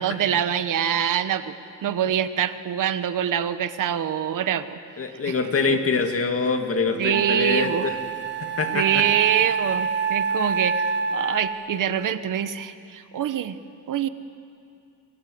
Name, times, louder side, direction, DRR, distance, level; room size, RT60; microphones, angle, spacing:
voice 1, 0.0-1.5 1.8-4.8 5.3-5.4 5.7-5.8 7.0-7.8 8.7-13.6 13.9-14.1, right 9 dB, 65° right, 12 dB, 1.2 m, -25 dB
voice 2, 5.0-8.0 8.4-9.0, left 4 dB, 40° left, 5 dB, 2.4 m, -25 dB
Wind instrument woodwind instrument, 6.5-6.6 7.1-11.8, right 6 dB, 30° right, 1.4 m, -27 dB
30.0 x 25.5 x 7.8 m, 2.5 s
cardioid pair, 135°, 34 cm